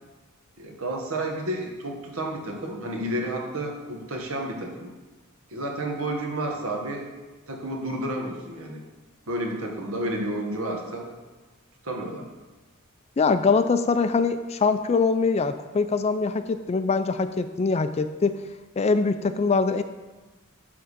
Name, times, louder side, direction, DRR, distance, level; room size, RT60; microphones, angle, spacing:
voice 1, 0.6-4.9 5.5-7.1 7.5-8.8 9.3-11.1 11.8-12.3, right 1 dB, 75° right, 1 dB, 1.5 m, -31 dB
voice 2, 13.2-18.4 18.8-19.8, left 4 dB, 30° left, 10 dB, 0.4 m, -23 dB
10.5 x 3.7 x 6.6 m, 1.2 s
head